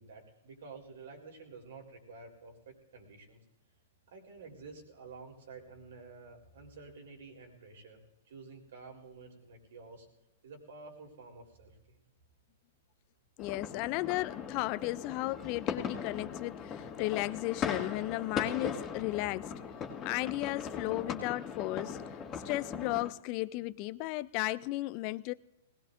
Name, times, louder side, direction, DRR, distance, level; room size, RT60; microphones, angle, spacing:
voice 1, 0.0-3.4 4.1-8.0 8.2-10.1 10.4-12.0, right 4 dB, 65° right, 3.8 m, -50 dB
voice 2, 13.4-19.5 20.0-22.2 22.4-25.3, left 19 dB, 45° left, 0.4 m, -34 dB
sound 1, 13.4-23.1, left 7 dB, 25° left, 1.9 m, -39 dB
20.5 x 18.5 x 2.6 m
hypercardioid pair, 115°, 0 cm